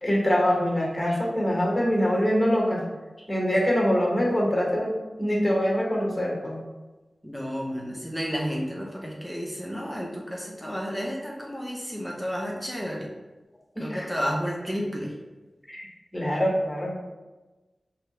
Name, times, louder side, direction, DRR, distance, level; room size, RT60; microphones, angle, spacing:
voice 1, 0.0-2.8 3.3-6.6 13.7-14.1 15.7-15.9 16.1-16.9, equal, 20° left, -2 dB, 1.3 m, -24 dB
voice 2, 7.2-13.1 13.8-15.1, equal, 5° right, -2 dB, 0.8 m, -31 dB
5.6 x 2.8 x 3.3 m, 1.2 s
wide cardioid pair, 65°, 0 cm